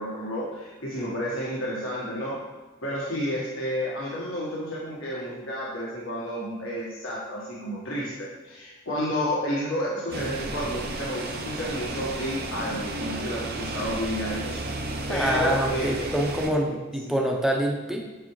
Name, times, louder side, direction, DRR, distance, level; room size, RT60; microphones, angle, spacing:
voice 1, 0.0-2.4 2.8-16.1 16.6-16.8 17.0-17.1, equal, 85° left, -6 dB, 1.3 m, -31 dB
sound 1, 10.1-16.5, right 2 dB, 50° right, 0.7 m, -33 dB
voice 2, 15.1-18.0, equal, ahead, 0 dB, 0.7 m, -25 dB
8.5 x 4.8 x 3.1 m, 1.2 s
head